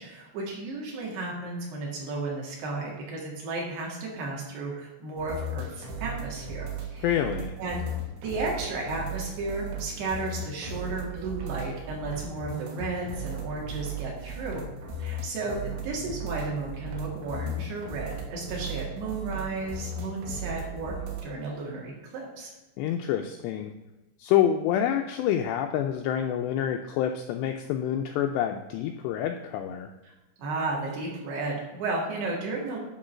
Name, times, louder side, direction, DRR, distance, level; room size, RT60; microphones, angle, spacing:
voice 1, 0.0-7.1 7.6-7.9 8.2-14.7 15.0-22.5 30.0-30.1 30.4-32.8, right 3 dB, 65° right, -2 dB, 3.8 m, -33 dB
sound 1, 5.2-21.2, right 2 dB, 80° right, 3.8 m, -36 dB
voice 2, 7.0-7.5 22.8-23.7 24.2-29.9, left 10 dB, 90° left, 5 dB, 2.4 m, -27 dB
11.0 x 3.9 x 6.2 m, 1.1 s
omnidirectional pair, 5.5 m